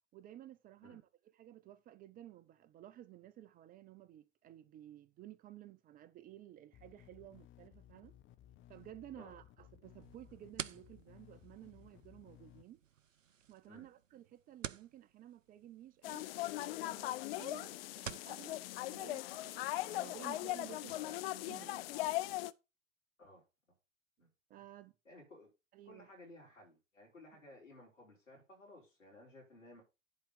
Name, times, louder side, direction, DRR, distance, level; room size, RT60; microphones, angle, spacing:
voice 1, 0.1-1.0 1.3-8.1 8.7-12.8 13.5-16.3 16.8-17.1 17.4-21.2 21.5-22.3 24.5-24.9 25.7-26.1 27.3-27.4, right 12 dB, 25° right, 0.5 m, -54 dB
sound 1, 6.7-12.6, left 11 dB, 30° left, 0.9 m, -60 dB
sound 2, 10.0-18.4, right 8 dB, 90° right, 0.5 m, -51 dB
sound 3, 16.0-22.5, left 16 dB, 50° left, 0.5 m, -39 dB
voice 2, 20.8-21.2 23.2-23.4 24.2-24.3 25.1-25.5 25.8-29.8, left 1 dB, 80° left, 4.1 m, -57 dB
10.5 x 4.3 x 5.2 m
figure-of-eight pair, 80°, 37 cm